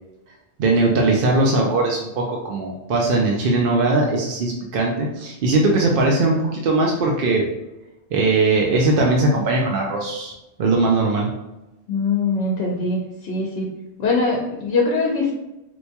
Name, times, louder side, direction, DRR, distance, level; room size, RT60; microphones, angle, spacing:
voice 1, 0.6-7.4 8.1-10.3 10.6-11.3, right 2 dB, 60° right, -1 dB, 0.6 m, -19 dB
voice 2, 11.9-13.7 14.0-15.3, left 3 dB, 65° left, -2 dB, 0.8 m, -22 dB
4.5 x 2.2 x 2.7 m, 0.96 s
omnidirectional pair, 1.2 m